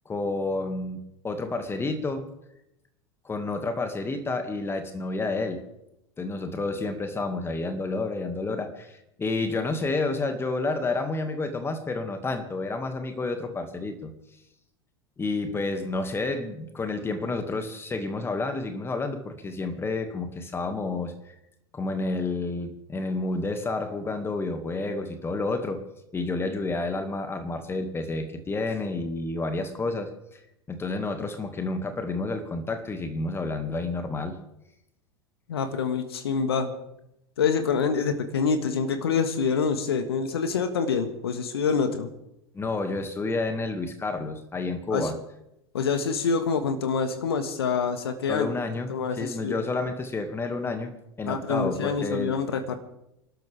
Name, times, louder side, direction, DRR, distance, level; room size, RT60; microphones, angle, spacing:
voice 1, 0.1-2.2 3.2-5.6 6.2-14.1 15.2-21.3 21.7-25.8 26.1-30.1 30.7-34.4 42.5-45.2 48.3-48.9 49.2-52.4, left 3 dB, 15° left, 7 dB, 2.1 m, -30 dB
voice 2, 35.5-36.7 37.4-42.1 44.9-45.1 45.7-48.5 48.9-49.6 51.3-52.8, left 5 dB, 65° left, 10 dB, 1.7 m, -26 dB
29.0 x 13.0 x 3.6 m, 0.84 s
figure-of-eight pair, 80°, 14 cm